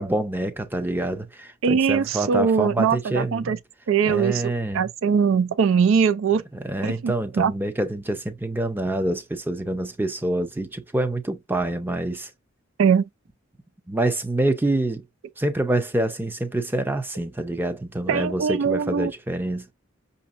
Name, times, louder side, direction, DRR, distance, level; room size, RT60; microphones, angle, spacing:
voice 1, 0.0-3.6 4.1-4.8 6.5-12.3 13.9-15.0 15.4-19.7, right 1 dB, 10° right, 0.5 m, -26 dB
voice 2, 1.6-3.6 3.9-6.4 6.8-7.5 12.8-13.0 18.1-19.1, right 6 dB, 75° right, 0.4 m, -21 dB
6.0 x 2.7 x 2.4 m
head